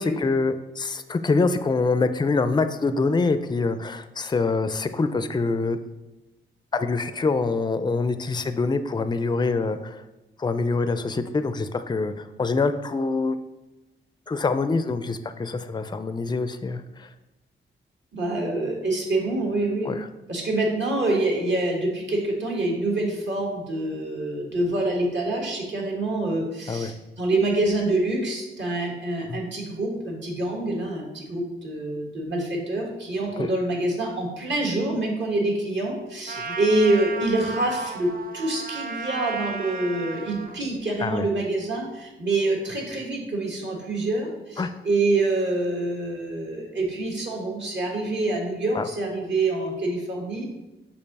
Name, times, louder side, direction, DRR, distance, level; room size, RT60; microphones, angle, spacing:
voice 1, 0.0-5.8 6.7-10.0 10.4-13.4 14.3-17.1 19.8-20.0 26.7-26.9 29.3-29.4 33.4-33.5 36.4-36.6 41.0-41.3 44.6-44.7 48.7-48.9, left 3 dB, 20° left, 10 dB, 0.4 m, -25 dB
voice 2, 18.1-19.9 20.3-50.6, right 2 dB, 60° right, -1 dB, 1.6 m, -26 dB
Trumpet, 36.3-40.6, right 4 dB, 45° right, 0.6 m, -34 dB
6.7 x 2.8 x 5.3 m, 1.0 s
cardioid pair, 85°, 21 cm